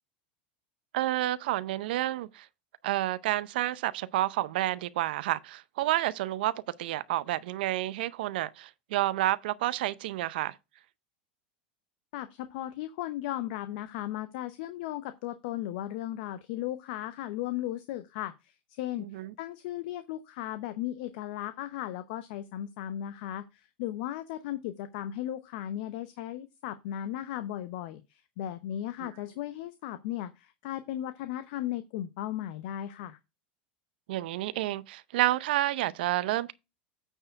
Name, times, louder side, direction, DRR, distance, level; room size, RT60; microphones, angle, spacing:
voice 1, 0.9-2.5 2.8-6.5 6.8-10.5 19.0-19.3 29.0-29.1 34.1-36.5, right 15 dB, 75° right, 0.6 m, -29 dB
voice 2, 12.1-33.2, left 12 dB, 65° left, 0.7 m, -36 dB
8.9 x 4.6 x 4.5 m
hypercardioid pair, 105°, 5 cm